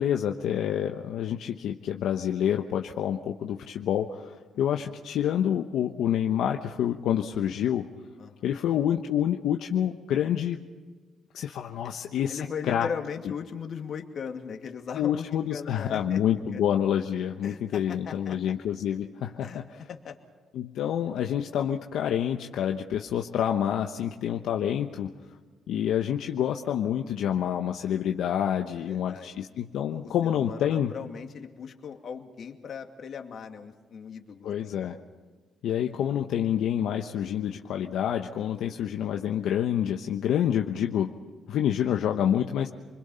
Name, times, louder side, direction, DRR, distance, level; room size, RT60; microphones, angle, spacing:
voice 1, 0.0-7.8 8.4-10.6 11.3-12.4 12.6-12.9 14.9-19.8 20.5-25.1 25.7-30.9 34.4-35.0 35.6-41.1 41.5-42.7, left 10 dB, 80° left, 3 dB, 1.1 m, -27 dB
voice 2, 4.5-4.9 8.2-8.6 11.8-11.9 12.3-16.2 16.5-16.6 17.4-18.5 19.4-19.6 19.9-20.2 28.8-29.3 29.9-34.8, left 6 dB, 60° left, 4 dB, 2.5 m, -39 dB
28.0 x 21.5 x 5.7 m, 1.4 s
cardioid pair, 90°, 0 cm